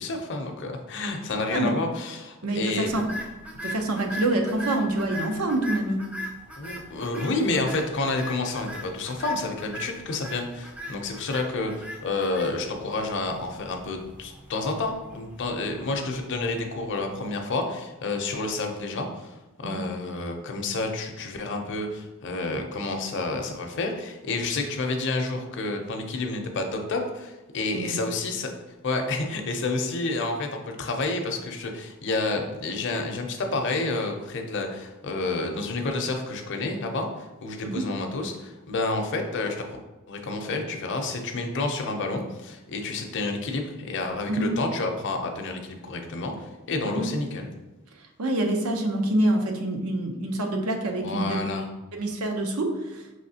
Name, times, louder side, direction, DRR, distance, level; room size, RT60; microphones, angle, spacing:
voice 1, 0.0-3.0 6.6-28.5 28.8-39.8 40.1-47.5 51.0-51.7, left 3 dB, 55° left, 3 dB, 0.6 m, -29 dB
voice 2, 2.4-3.0 3.6-6.0 19.6-19.9 27.7-28.0 37.6-37.7 44.3-44.5 46.8-47.1 48.2-51.4 51.9-53.0, right 1 dB, 80° right, 3 dB, 0.7 m, -26 dB
sound 1, 2.9-17.2, left 1 dB, 5° right, 0.4 m, -40 dB
5.6 x 3.1 x 2.8 m, 1.1 s
head